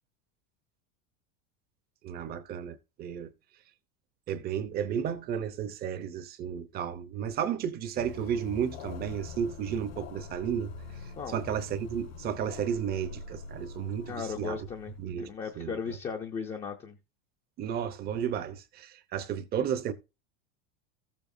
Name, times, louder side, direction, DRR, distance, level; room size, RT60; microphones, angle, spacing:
voice 1, 2.0-3.3 4.3-10.7 11.3-14.6 15.0-15.3 15.6-15.8 17.6-19.9, right 8 dB, 25° right, 0.8 m, -33 dB
sound 1, 8.0-15.9, left 4 dB, 90° left, 3.4 m, -44 dB
voice 2, 14.0-17.0, left 6 dB, 15° left, 0.6 m, -37 dB
14.5 x 7.2 x 2.6 m
supercardioid pair, 170°, 37 cm